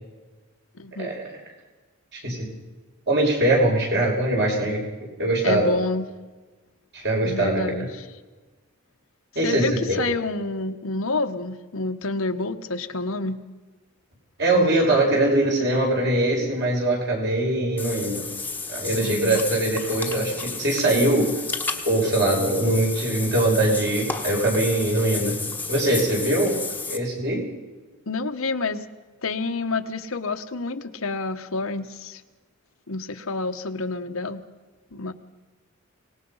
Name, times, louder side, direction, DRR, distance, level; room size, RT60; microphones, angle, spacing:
voice 1, 0.8-1.2 5.4-6.1 7.2-8.1 9.4-13.4 19.0-19.4 28.1-28.9 29.2-32.2 32.9-34.4 34.9-35.1, left 3 dB, 80° left, 7 dB, 1.2 m, -28 dB
voice 2, 2.1-2.5 3.1-4.8 5.2-5.7 6.9-7.9 9.4-10.0 14.4-18.2 18.7-21.3 21.8-25.4 25.7-26.6 26.9-27.4, right 1 dB, 50° right, -1 dB, 5.8 m, -22 dB
Water / Bathtub (filling or washing), 17.8-27.0, left 4 dB, 10° left, 1.3 m, -32 dB
24.5 x 19.0 x 5.6 m, 1.3 s
head